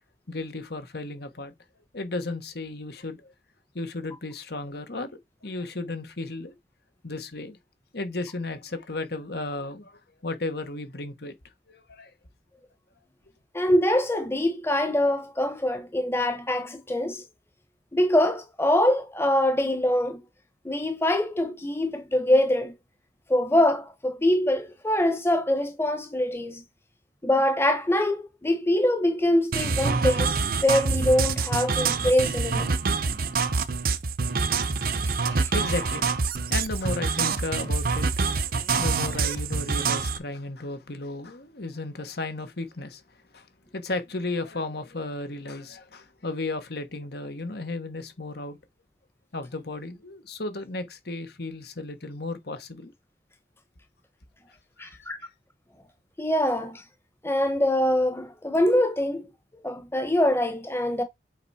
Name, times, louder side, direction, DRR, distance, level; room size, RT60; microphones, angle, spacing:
voice 1, 0.3-1.5 1.9-3.3 3.7-5.1 5.4-6.5 7.0-7.6 7.9-11.3 11.7-12.1 34.7-34.9 35.3-36.2 36.5-38.1 38.3-43.0 43.3-43.5 43.7-48.6 49.3-52.9 54.8-55.3, left 2 dB, 65° left, 1.4 m, -34 dB
voice 2, 13.5-17.2 17.9-20.2 20.6-22.7 23.3-26.6 27.2-32.7 35.3-35.5 54.8-55.2 56.2-56.8 57.2-59.3 59.6-61.0, left 1 dB, 15° left, 1.1 m, -24 dB
sound 1, 29.5-40.2, right 4 dB, 55° right, 0.8 m, -26 dB
8.0 x 4.7 x 4.3 m
head